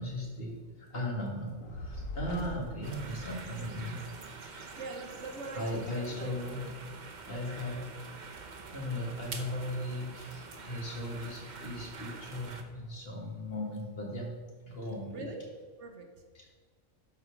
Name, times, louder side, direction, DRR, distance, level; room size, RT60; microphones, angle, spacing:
voice 1, 0.0-4.0 4.4-4.8 5.5-6.7 7.3-7.8 8.7-14.3 14.6-15.3 16.4-16.5, left 1 dB, 45° left, -1 dB, 2.1 m, -37 dB
Fire, 1.6-4.1, left 2 dB, 80° left, 1.7 m, -42 dB
sound 1, 2.8-12.6, right 4 dB, 40° right, 0.9 m, -46 dB
voice 2, 4.8-6.3 7.3-7.9 15.1-15.5 15.8-16.2, right 3 dB, 60° right, 4 dB, 1.2 m, -43 dB
11.5 x 4.6 x 5.0 m, 1.5 s
omnidirectional pair, 1.4 m